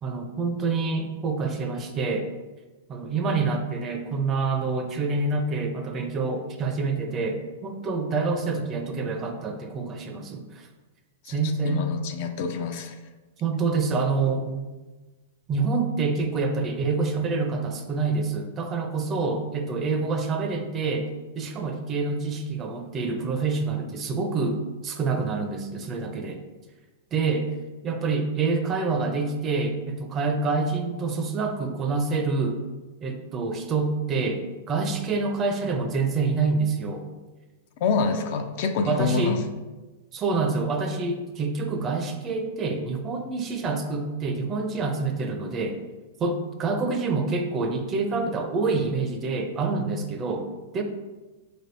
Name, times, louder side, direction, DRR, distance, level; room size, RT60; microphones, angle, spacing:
voice 1, 0.0-2.3 2.9-10.7 11.3-11.9 13.4-14.6 15.5-21.1 21.4-26.4 27.1-27.5 27.8-32.6 33.0-37.0 38.9-39.4 40.1-45.8 46.2-50.8, right 4 dB, 30° right, 5 dB, 0.5 m, -27 dB
voice 2, 11.6-13.0 37.8-39.6, left 4 dB, 55° left, 6 dB, 0.4 m, -27 dB
3.9 x 3.4 x 2.6 m, 1.2 s
hypercardioid pair, 115°, 0 cm